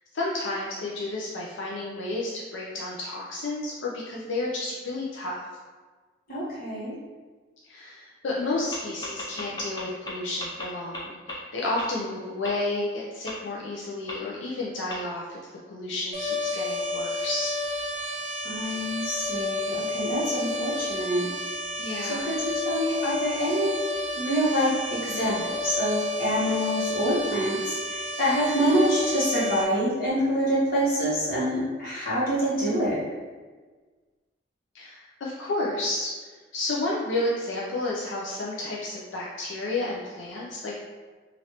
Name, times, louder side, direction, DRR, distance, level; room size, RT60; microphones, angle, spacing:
voice 1, 0.1-5.4 7.7-15.4 15.7-17.5 21.8-22.3 34.7-36.1 36.5-40.8, left 2 dB, 85° left, -4 dB, 0.5 m, -31 dB
voice 2, 6.3-6.9 18.4-21.3 22.0-23.8 24.2-33.0, equal, 50° left, -9 dB, 1.2 m, -26 dB
sound 1, 8.7-8.8 9.0-10.1 10.4-10.6 10.9-11.0 11.3-11.4 11.8-11.9 12.4-12.5 13.3-13.4 14.1-14.2 14.9-15.0, left 2 dB, 20° left, 0.5 m, -35 dB
sound 2, 16.1-29.6, left 2 dB, 40° right, 0.8 m, -31 dB
3.2 x 2.5 x 2.9 m, 1.4 s
head